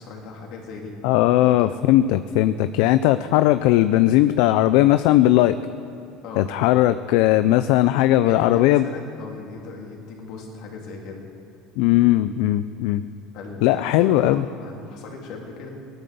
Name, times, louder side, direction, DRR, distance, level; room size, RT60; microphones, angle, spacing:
voice 1, 0.0-1.0 1.4-1.9 6.2-6.5 8.3-11.2 13.3-15.7, left 4 dB, 55° left, -1 dB, 3.4 m, -37 dB
voice 2, 1.0-5.6 6.4-8.9 11.8-13.0 13.6-14.4, left 14 dB, 70° left, 12 dB, 0.5 m, -18 dB
17.5 x 11.5 x 6.9 m, 2.7 s
cardioid pair, 150°, 0 cm